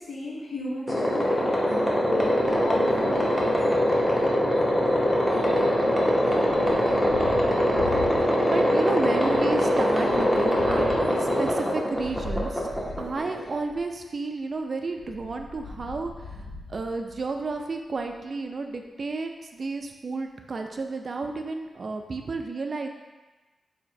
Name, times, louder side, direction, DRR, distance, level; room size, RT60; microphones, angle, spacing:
voice 1, 0.0-3.3, left 2 dB, 75° left, -4 dB, 0.8 m, -35 dB
sound 1, 0.9-13.5, equal, 10° left, 0.6 m, -23 dB
Thunder, 6.3-8.7 9.0-13.9 14.9-17.6, left 2 dB, 55° left, 0.4 m, -40 dB
voice 2, 8.5-10.9 11.2-12.7 13.0-16.4 16.7-22.9, right 3 dB, 45° right, 4 dB, 0.3 m, -32 dB
4.0 x 2.9 x 2.6 m, 1.2 s
wide cardioid pair, 140°, 0 cm